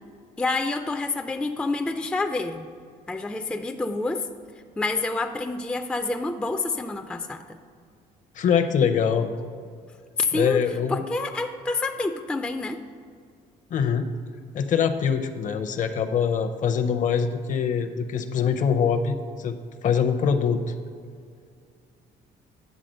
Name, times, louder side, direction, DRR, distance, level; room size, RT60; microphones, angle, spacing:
voice 1, 0.4-2.7 3.1-4.3 4.8-7.6 10.2-10.6 10.9-12.8, left 3 dB, 5° left, 6 dB, 0.3 m, -28 dB
voice 2, 8.4-9.3 10.3-11.0 13.7-14.1 14.5-19.6 19.8-20.6, left 7 dB, 50° left, 8 dB, 0.6 m, -23 dB
9.2 x 3.7 x 6.4 m, 2.2 s
cardioid pair, 110°, 17 cm